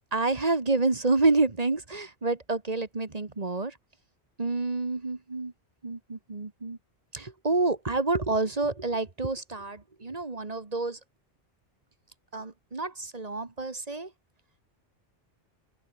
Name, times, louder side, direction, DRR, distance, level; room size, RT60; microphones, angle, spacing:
voice 1, 0.0-3.7 4.4-5.5 5.8-6.8 7.1-11.0 12.3-14.1, right 3 dB, 35° right, 1.7 m, -28 dB
open air
omnidirectional pair, 1.1 m